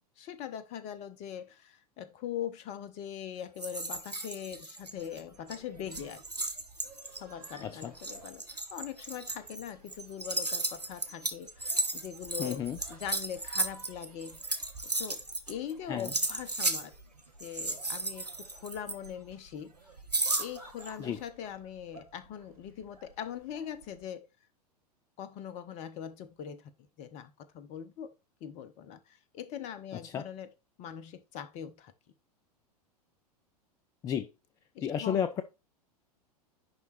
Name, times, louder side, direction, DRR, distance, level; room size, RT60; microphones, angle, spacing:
voice 1, 0.2-6.2 7.2-14.6 15.0-16.9 17.4-19.8 20.4-24.3 25.2-26.7 27.0-28.1 28.4-30.5 30.8-31.9 34.7-35.2, left 9 dB, 35° left, 0.9 m, -41 dB
sound 1, 3.6-5.2 5.5-5.6 5.9-15.7 16.0-16.9 17.4-19.3 20.1-20.9, right 2 dB, 90° right, 0.9 m, -35 dB
sound 2, 5.0-24.1, right 3 dB, 65° right, 3.0 m, -55 dB
voice 2, 7.6-7.9 12.4-12.8 15.9-16.1 21.0-21.2 29.9-30.3 34.0-34.3 34.8-35.4, left 8 dB, 15° left, 0.4 m, -32 dB
10.5 x 3.6 x 4.1 m
figure-of-eight pair, 95°, 20 cm